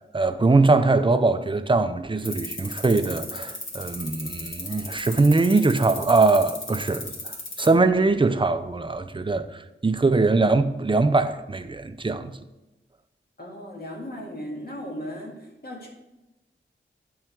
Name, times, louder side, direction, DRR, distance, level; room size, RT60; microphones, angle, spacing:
voice 1, 0.1-12.3, right 3 dB, 25° right, 0.5 m, -22 dB
sound 1, 2.2-7.7, left 2 dB, 80° left, 1.5 m, -35 dB
voice 2, 13.4-15.9, equal, 50° left, 1.8 m, -36 dB
9.2 x 4.7 x 4.6 m
wide cardioid pair, 90°, 20 cm